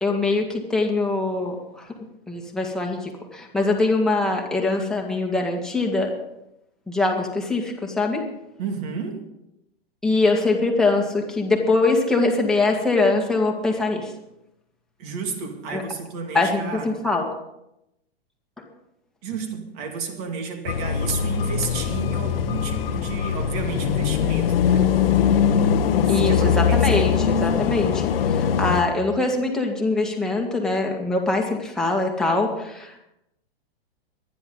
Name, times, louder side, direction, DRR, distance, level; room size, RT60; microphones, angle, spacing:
voice 1, 0.0-1.9 2.3-6.1 6.9-8.2 10.0-14.1 15.7-15.8 16.3-17.3 26.1-28.1 28.6-33.0, left 3 dB, ahead, 1.9 m, -23 dB
voice 2, 8.6-9.3 15.0-17.0 19.2-25.4 26.1-27.2, right 5 dB, 40° right, 2.3 m, -32 dB
sound 1, 20.7-28.8, left 7 dB, 70° left, 1.2 m, -21 dB
24.0 x 10.5 x 4.0 m
hypercardioid pair, 155°, 30 cm